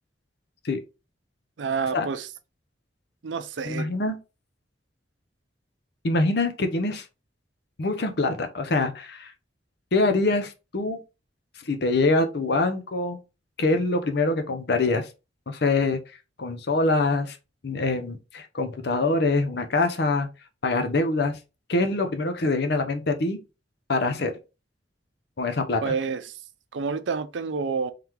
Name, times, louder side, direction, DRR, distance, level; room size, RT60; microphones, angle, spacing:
voice 1, 1.6-2.3 3.2-3.9 25.8-26.4 26.7-27.9, right 5 dB, 80° right, 0.5 m, -28 dB
voice 2, 3.7-4.2 6.0-7.0 7.8-9.3 9.9-11.0 11.6-13.2 13.6-15.1 15.5-16.0 16.4-17.4 17.6-20.3 20.6-21.4 21.7-23.4 23.9-24.3 25.4-25.9, left 2 dB, 60° left, 0.7 m, -24 dB
3.8 x 3.3 x 2.9 m
head